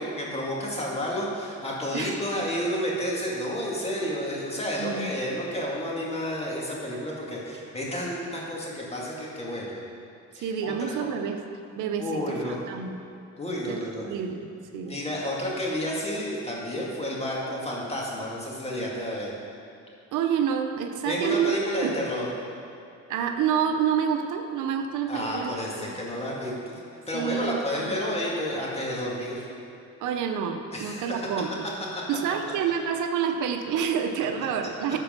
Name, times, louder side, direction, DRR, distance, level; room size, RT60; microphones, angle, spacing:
voice 1, 0.0-9.7 10.3-11.1 12.0-12.6 13.4-14.2 14.8-19.3 21.1-22.3 25.1-26.8 27.1-29.5 30.7-31.3, equal, 20° left, -4 dB, 2.3 m, -31 dB
voice 2, 4.8-5.1 10.4-11.4 11.8-13.0 13.7-14.5 14.7-15.0 20.1-21.5 21.8-22.1 23.1-25.9 27.1-28.0 30.0-31.7 32.1-35.0, right 7 dB, 85° right, 6 dB, 0.7 m, -28 dB
13.0 x 4.5 x 5.3 m, 2.6 s
cardioid pair, 90°, 30 cm